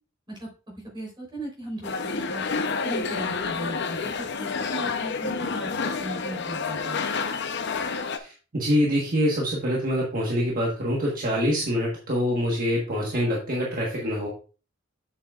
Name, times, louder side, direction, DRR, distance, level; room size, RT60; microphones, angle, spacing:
voice 1, 0.3-2.4 2.8-7.0, right 1 dB, 25° right, -1 dB, 3.6 m, -37 dB
sound 1, 1.8-8.2, left 4 dB, 60° left, 0.7 m, -29 dB
voice 2, 8.1-14.3, equal, 45° right, -2 dB, 1.4 m, -25 dB
7.5 x 7.4 x 2.4 m, 0.36 s
head